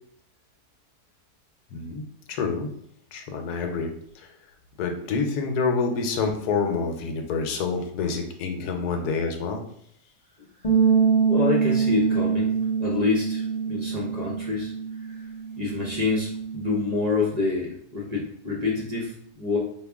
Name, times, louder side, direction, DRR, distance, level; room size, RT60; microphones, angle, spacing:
voice 1, 1.7-2.7 3.1-4.3 4.8-9.6, left 4 dB, 80° left, 4 dB, 1.2 m, -27 dB
sound 1, 10.6-16.9, right 6 dB, 40° left, 0.6 m, -25 dB
voice 2, 11.3-14.7 15.1-15.2 15.6-19.6, left 4 dB, 30° right, -4 dB, 0.8 m, -27 dB
5.0 x 2.3 x 3.4 m, 0.68 s
omnidirectional pair, 1.7 m